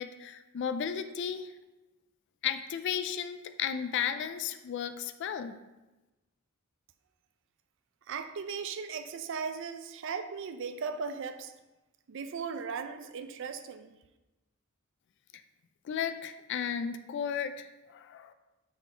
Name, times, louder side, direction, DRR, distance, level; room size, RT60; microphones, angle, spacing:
voice 1, 0.0-1.5 2.4-5.5 15.8-18.3, left 8 dB, 55° left, 10 dB, 0.3 m, -34 dB
voice 2, 8.1-11.5 12.1-14.0, right 5 dB, 60° right, 8 dB, 0.4 m, -37 dB
6.1 x 3.7 x 4.3 m, 1.1 s
head